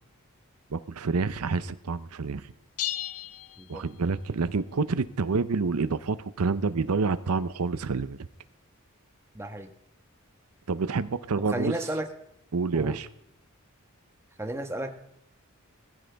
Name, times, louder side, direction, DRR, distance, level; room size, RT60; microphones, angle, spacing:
voice 1, 0.7-2.5 3.7-8.3 10.7-11.7 12.5-13.1, right 4 dB, 80° right, 14 dB, 0.6 m, -28 dB
sound 1, 2.8-4.4, left 13 dB, 85° left, 0.5 m, -35 dB
voice 2, 9.3-9.7 11.4-12.1 12.7-13.0 14.4-14.9, right 1 dB, 10° right, 6 dB, 1.3 m, -33 dB
18.0 x 15.5 x 3.5 m, 0.80 s
head